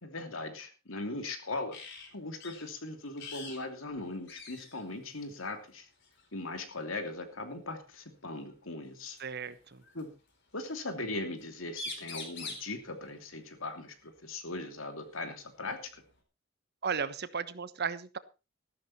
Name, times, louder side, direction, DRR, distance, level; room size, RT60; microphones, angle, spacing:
voice 1, 0.0-1.8 2.1-5.9 6.3-9.2 9.9-10.1 10.5-16.0, left 2 dB, 75° left, 7 dB, 2.8 m, -39 dB
sound 1, 1.7-2.1 2.4-2.7 3.2-3.6 3.9-4.0 4.3-4.9 6.0-6.3 8.0-8.1 9.2-10.0 11.4-11.5 11.7-12.7 14.7-14.8 15.2-16.2, left 3 dB, 55° left, 4.3 m, -44 dB
voice 2, 9.2-9.8 16.8-18.2, right 6 dB, 50° right, 14 dB, 1.1 m, -35 dB
14.5 x 12.5 x 4.3 m, 0.30 s
head